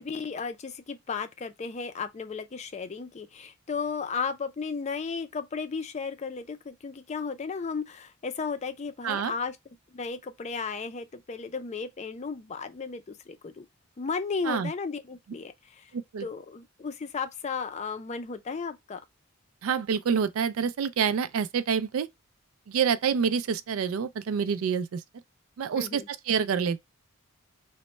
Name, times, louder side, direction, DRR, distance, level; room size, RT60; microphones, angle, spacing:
voice 1, 0.0-9.6 9.9-13.7 14.0-15.9 16.2-19.0 25.8-26.1, left 5 dB, 30° left, 0.4 m, -34 dB
voice 2, 15.9-16.3 19.6-22.1 22.7-25.0 25.6-26.8, right 6 dB, 75° right, 0.4 m, -27 dB
3.0 x 2.1 x 4.2 m
head